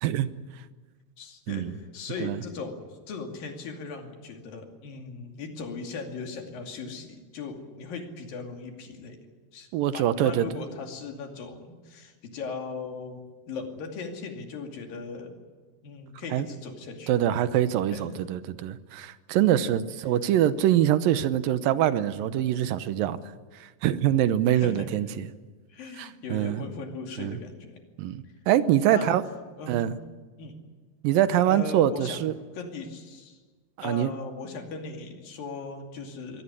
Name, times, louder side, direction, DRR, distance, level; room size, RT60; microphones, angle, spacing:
voice 1, 1.2-9.2 9.5-15.3 15.8-17.1 17.9-18.0 24.6-24.9 25.7-27.8 28.2-28.3 28.9-29.1 29.6-30.0 30.4-30.6 31.5-32.2 32.5-33.4 33.8-36.4, left 4 dB, 80° left, 3 dB, 4.3 m, -38 dB
voice 2, 9.7-10.5 16.3-16.5 17.1-23.2 23.5-25.3 26.0-26.6 27.2-27.4 28.0-29.2 29.7-30.0 31.0-32.3 33.8-34.1, right 11 dB, 80° right, 13 dB, 2.6 m, -24 dB
23.5 x 17.5 x 9.8 m, 1.4 s
omnidirectional pair, 4.0 m